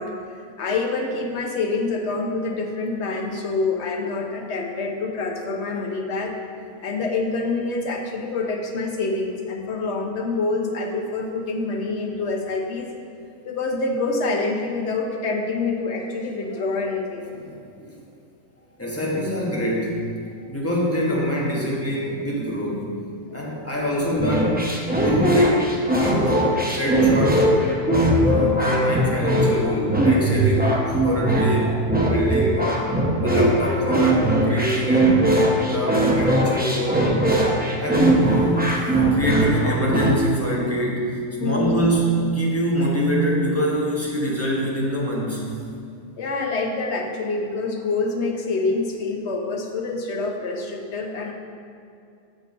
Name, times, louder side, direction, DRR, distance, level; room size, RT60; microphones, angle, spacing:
voice 1, 0.0-6.4 6.8-12.9 13.4-17.3 23.3-23.5 41.4-41.9 46.2-51.3, left 3 dB, 55° left, 2 dB, 1.0 m, -26 dB
voice 2, 17.4-18.0 18.8-20.0 20.5-22.9 23.3-24.7 25.0-25.6 25.9-26.4 26.7-27.5 28.1-32.7 33.2-35.3 35.5-37.1 37.8-38.6 39.0-45.5, equal, 10° left, -4 dB, 1.1 m, -25 dB
sound 1, 24.2-40.2, right 1 dB, 10° right, 0.4 m, -20 dB
6.7 x 5.3 x 5.3 m, 2.4 s
omnidirectional pair, 1.5 m